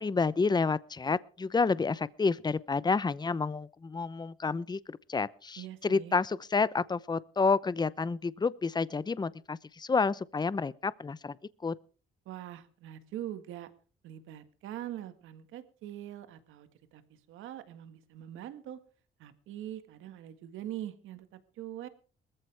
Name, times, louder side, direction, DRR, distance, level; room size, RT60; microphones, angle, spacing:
voice 1, 0.0-11.4 11.6-11.7, left 4 dB, 20° left, 0.7 m, -29 dB
voice 2, 5.6-6.2 12.3-13.7 14.0-18.8 19.2-21.9, right 12 dB, 90° right, 1.8 m, -43 dB
20.5 x 14.5 x 3.5 m
cardioid pair, 90°, 20 cm